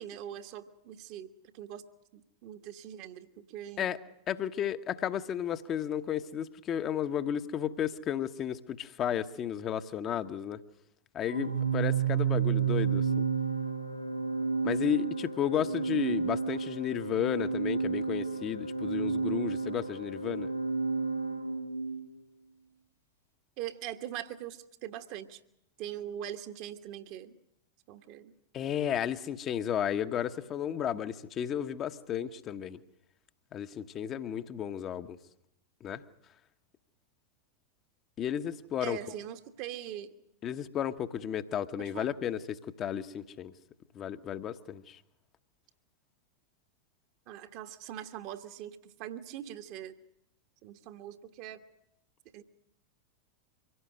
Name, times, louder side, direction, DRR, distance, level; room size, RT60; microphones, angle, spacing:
voice 1, 0.0-1.8 2.1-3.9 23.6-25.4 25.8-27.3 27.9-28.3 38.8-40.1 41.8-42.1 47.3-49.9 50.6-51.6 52.3-52.4, right 11 dB, 45° right, 7 dB, 1.4 m, -42 dB
voice 2, 4.3-10.6 11.1-13.2 14.6-20.5 28.5-32.8 33.5-35.2 35.8-36.0 38.2-39.0 40.4-43.5 43.9-45.0, left 9 dB, 30° left, 10 dB, 1.1 m, -33 dB
Organ, 11.3-22.1, right 5 dB, 85° right, 0.8 m, -31 dB
24.5 x 17.0 x 7.8 m, 0.83 s
figure-of-eight pair, 90°, 0 cm